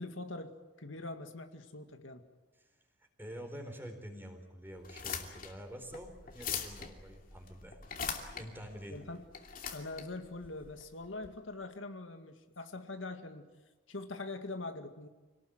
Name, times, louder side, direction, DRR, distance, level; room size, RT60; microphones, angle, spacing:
voice 1, 0.0-2.2 8.9-9.2 9.7-13.5 13.9-15.1, left 2 dB, 90° left, 6 dB, 2.1 m, -43 dB
voice 2, 3.2-9.0, equal, 10° right, 4 dB, 4.2 m, -47 dB
sound 1, 4.8-11.3, left 7 dB, 45° left, 2.7 m, -42 dB
27.0 x 18.5 x 9.4 m, 1.2 s
head